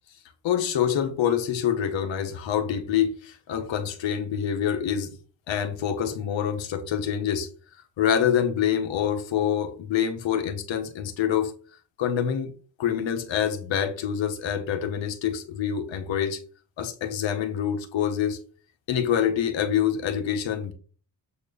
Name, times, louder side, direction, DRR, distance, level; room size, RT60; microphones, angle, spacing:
voice 1, 0.4-5.2 5.5-7.5 8.0-11.5 12.0-12.5 12.8-16.4 16.8-18.4 18.9-20.7, left 9 dB, 90° left, 1.6 m, -26 dB
8.0 x 4.5 x 5.4 m
wide cardioid pair, 165°, 44 cm